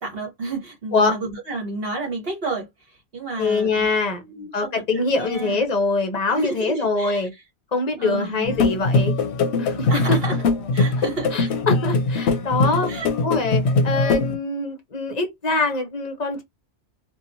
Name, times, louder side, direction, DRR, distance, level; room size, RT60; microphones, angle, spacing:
voice 1, 0.0-3.9 4.2-5.6 6.3-7.4 8.0-8.6 9.9-10.4 10.7-11.5 12.9-13.1, right 3 dB, 55° right, 1.1 m, -31 dB
voice 2, 3.4-4.2 4.5-7.3 7.7-9.1 9.6-10.2 11.3-12.9 13.2-16.4, left 3 dB, 40° left, 0.7 m, -23 dB
sound 1, 8.5-14.4, left 3 dB, 70° left, 0.8 m, -21 dB
2.8 x 2.3 x 2.6 m
omnidirectional pair, 1.2 m